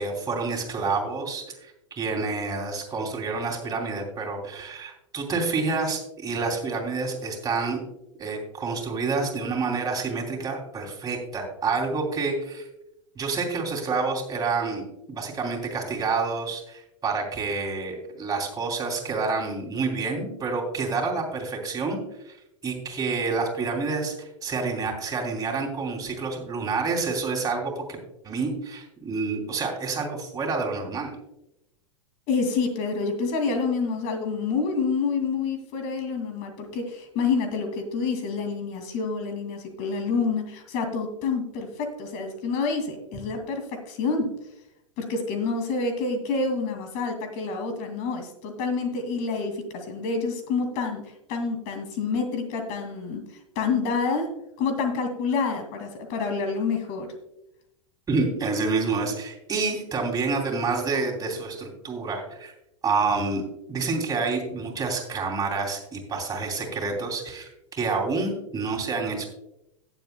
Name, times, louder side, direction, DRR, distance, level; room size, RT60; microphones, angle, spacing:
voice 1, 0.0-7.8 8.2-12.7 13.1-22.0 22.3-22.4 22.6-28.0 28.2-31.1 58.1-62.5 62.8-63.4 63.7-69.3, right 4 dB, 20° right, 0 dB, 2.9 m, -28 dB
voice 2, 32.3-44.3 45.0-53.2 53.6-54.3 54.6-57.1, left 4 dB, 50° left, 6 dB, 2.4 m, -28 dB
17.5 x 7.4 x 2.2 m, 0.86 s
hypercardioid pair, 95°, 17 cm